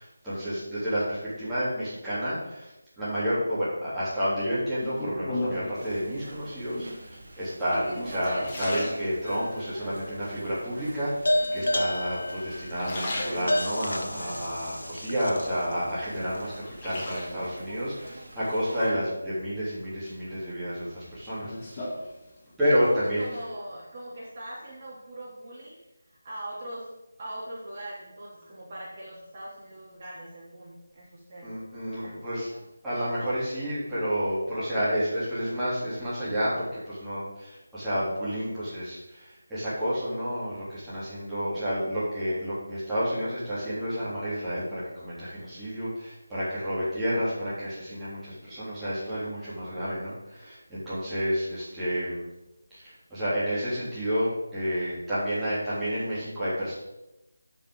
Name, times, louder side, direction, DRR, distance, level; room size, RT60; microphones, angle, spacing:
voice 1, 0.0-2.7 3.0-21.9 22.6-23.2 31.4-32.5 32.8-52.3 52.7-56.7, equal, 5° right, -15 dB, 3.4 m, -30 dB
sound 1, 4.8-5.9 6.6-7.1 7.7-9.6 10.1-10.8 11.6-12.2 12.6-13.9 14.4-15.6 16.0-17.6 19.0-19.6 20.0-22.7 22.9-23.4, left 1 dB, 25° left, 1.9 m, -37 dB
sound 2, 5.7-18.9, right 1 dB, 50° right, 2.4 m, -44 dB
sound 3, 9.2-9.9 11.2-15.7, left 1 dB, 75° left, 1.0 m, -30 dB
voice 2, 22.6-25.8 26.0-26.9 27.2-31.5 32.0-32.2 32.5-32.6 46.5-46.8, right 1 dB, 35° right, -7 dB, 2.9 m, -41 dB
12.0 x 5.6 x 3.9 m, 0.96 s
figure-of-eight pair, 165°, 0 cm